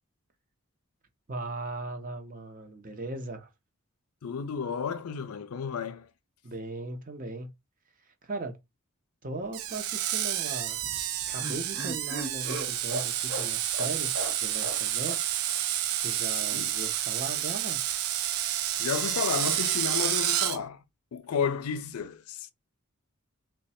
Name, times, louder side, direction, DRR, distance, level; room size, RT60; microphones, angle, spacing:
voice 1, 1.3-3.5 6.4-7.5 8.2-8.6 9.2-10.9 11.3-14.1 14.4-15.4 16.0-17.8, right 2 dB, 40° right, 0.7 m, -38 dB
voice 2, 4.2-6.1 16.5-16.7 18.8-20.8 21.1-22.5, left 6 dB, 85° left, 0.5 m, -32 dB
Screech, 9.5-20.6, right 11 dB, 80° right, 0.5 m, -30 dB
Laughter, 10.8-14.8 15.1-15.2 15.5-15.6, right 1 dB, 55° right, 1.2 m, -37 dB
3.2 x 2.2 x 4.2 m
head